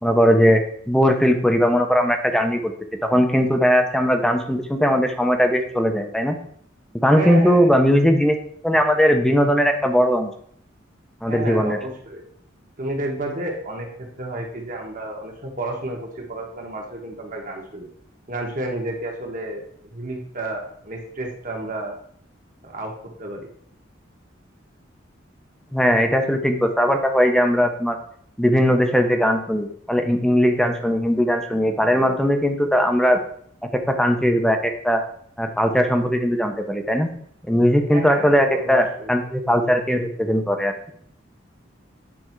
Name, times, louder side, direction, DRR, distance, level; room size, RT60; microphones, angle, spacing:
voice 1, 0.0-2.7 3.0-6.4 7.0-8.4 8.6-10.3 11.2-11.8 25.7-28.0 28.4-33.2 33.6-35.0 35.4-37.1 37.5-40.7, equal, 5° left, 5 dB, 0.6 m, -19 dB
voice 2, 7.1-7.7 8.7-8.8 11.3-12.2 12.8-17.9 18.3-21.9 22.6-22.9 23.2-23.5 37.9-39.1, right 1 dB, 45° right, 1 dB, 1.4 m, -31 dB
8.7 x 3.4 x 4.5 m, 0.64 s
head